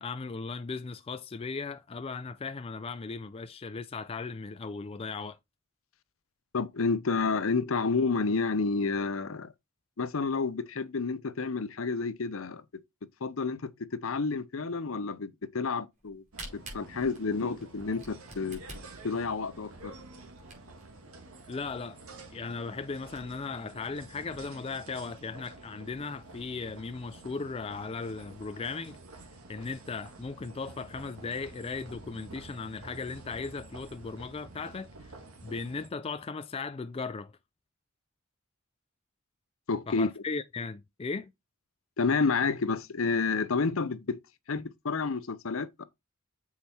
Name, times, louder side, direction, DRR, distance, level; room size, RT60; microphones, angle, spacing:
voice 1, 0.0-5.4 21.5-22.0 22.3-29.0 29.5-35.1 35.4-37.3 39.9-41.3, left 4 dB, 25° left, 0.4 m, -37 dB
voice 2, 6.5-9.5 10.0-12.6 13.2-16.2 16.5-18.6 19.0-19.9 39.7-40.1 42.0-44.2 44.5-45.8, left 4 dB, 65° left, 0.7 m, -30 dB
Camera, 16.0-20.9 21.5-21.6 21.8-21.9 22.4-22.5 22.8-23.2, right 2 dB, 35° right, 4.0 m, -47 dB
sound 1, 16.3-35.9, right 2 dB, 80° right, 1.8 m, -49 dB
7.1 x 4.7 x 4.3 m
head